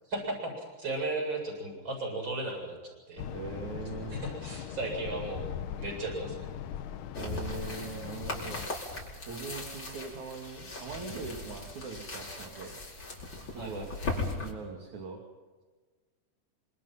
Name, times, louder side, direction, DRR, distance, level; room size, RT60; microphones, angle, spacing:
voice 1, 0.1-3.3 4.1-5.5 5.8-6.5 13.6-14.0, right 2 dB, 35° right, 2 dB, 8.4 m, -35 dB
sound 1, 3.2-8.7, left 9 dB, 75° left, 2.5 m, -40 dB
voice 2, 3.3-4.2 7.2-8.6 9.3-12.8 13.5-15.2, right 5 dB, 60° right, 2 dB, 4.0 m, -41 dB
sound 2, 7.1-14.5, left 3 dB, 35° left, 5.6 m, -38 dB
26.5 x 26.5 x 5.9 m, 1.4 s
omnidirectional pair, 3.7 m